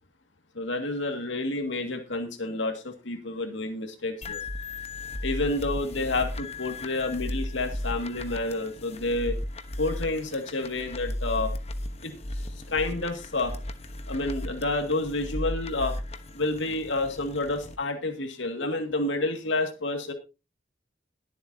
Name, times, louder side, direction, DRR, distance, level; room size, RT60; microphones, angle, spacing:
voice 1, 0.5-4.4 5.2-9.4 9.8-11.5 12.0-12.1 12.7-13.5 14.1-16.0 16.3-20.1, left 2 dB, 75° left, 4 dB, 2.1 m, -29 dB
sound 1, 4.2-17.8, left 1 dB, 35° left, 1.1 m, -35 dB
21.0 x 7.7 x 2.8 m, 0.30 s
head